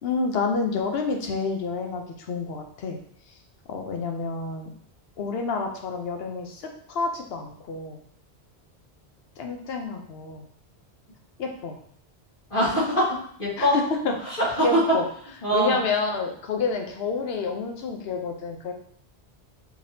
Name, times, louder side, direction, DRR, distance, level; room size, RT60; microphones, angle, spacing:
voice 1, 0.0-3.0 3.7-4.7 5.2-8.0 9.4-10.4 11.4-11.8 13.6-13.8 14.6-15.0 15.5-18.7, left 4 dB, 70° left, 3 dB, 0.9 m, -29 dB
voice 2, 12.5-13.7 14.2-14.8 15.4-15.8, equal, 55° left, -9 dB, 2.0 m, -23 dB
4.9 x 3.4 x 2.7 m, 0.62 s
omnidirectional pair, 1.1 m